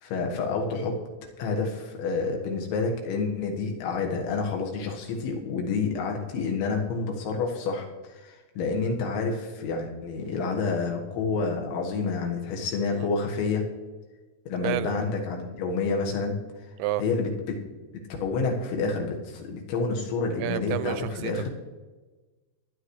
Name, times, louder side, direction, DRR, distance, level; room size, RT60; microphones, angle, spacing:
voice 1, 0.0-1.0 1.4-13.6 14.5-16.4 17.0-17.6 18.2-21.5, left 4 dB, 85° left, 2 dB, 3.9 m, -29 dB
voice 2, 20.4-21.5, right 13 dB, 85° right, 14 dB, 2.7 m, -30 dB
22.0 x 9.6 x 3.2 m, 1.3 s
omnidirectional pair, 5.2 m